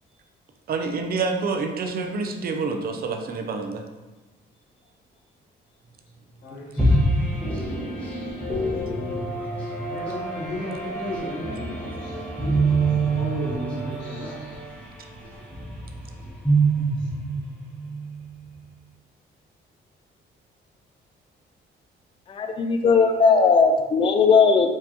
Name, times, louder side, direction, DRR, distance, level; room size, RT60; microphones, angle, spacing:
voice 1, 0.7-3.8, right 4 dB, 50° right, 4 dB, 0.5 m, -27 dB
voice 2, 6.4-7.0 9.9-12.2 13.1-14.6, left 1 dB, 85° left, -5 dB, 1.0 m, -34 dB
sound 1, 6.8-18.4, right 2 dB, 5° left, 0.8 m, -26 dB
voice 3, 22.3-24.7, left 5 dB, 25° left, 5 dB, 0.4 m, -18 dB
4.4 x 2.4 x 2.8 m, 1.2 s
cardioid pair, 90°, 20 cm